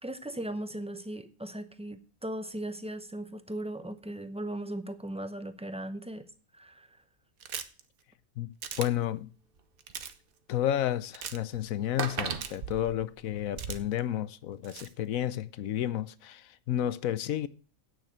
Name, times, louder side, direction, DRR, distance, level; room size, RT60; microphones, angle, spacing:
voice 1, 0.0-6.2 6.5-6.9, right 1 dB, 5° right, 0.5 m, -38 dB
sound 1, 7.4-7.8 8.6-8.9 9.8-10.1 11.1-11.4 12.4-12.7 13.6-14.0 14.6-14.9, right 8 dB, 85° right, 1.4 m, -39 dB
voice 2, 8.4-9.3 10.5-17.5, left 11 dB, 75° left, 1.1 m, -31 dB
sound 2, 8.6-8.7 9.6-9.7 9.9-10.0 11.0-11.1 11.5-13.8, right 6 dB, 45° right, 1.0 m, -36 dB
9.3 x 6.5 x 8.6 m
omnidirectional pair, 1.5 m